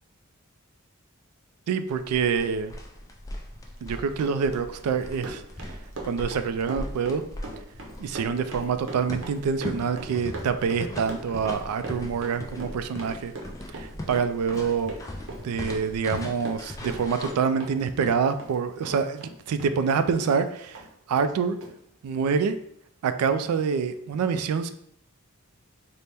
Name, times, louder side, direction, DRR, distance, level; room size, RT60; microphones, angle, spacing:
voice 1, 1.7-2.7 3.8-5.4 6.1-7.2 8.0-13.3 13.7-14.9 15.4-20.8 21.1-21.6 22.0-22.6 23.0-24.7, right 6 dB, 90° right, 11 dB, 0.3 m, -26 dB
sound 1, 1.9-17.3, left 1 dB, 15° left, 0.3 m, -39 dB
Run, 3.8-18.6 18.8-20.4 20.7-20.9 21.1-21.3 21.6-21.7, right 2 dB, 65° right, 0.7 m, -40 dB
4.1 x 2.0 x 3.4 m, 0.71 s
head